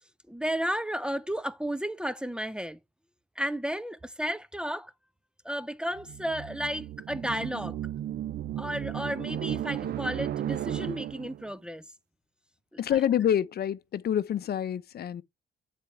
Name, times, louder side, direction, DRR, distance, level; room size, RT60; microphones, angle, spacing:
voice 1, 0.3-2.8 3.4-4.9 5.4-7.8 8.6-11.8, equal, 5° right, 0.6 m, -33 dB
sound 1, 6.0-11.5, right 11 dB, 55° right, 0.4 m, -34 dB
voice 2, 12.8-15.2, left 10 dB, 55° left, 0.7 m, -27 dB
8.5 x 4.3 x 4.7 m
cardioid pair, 90°, 20 cm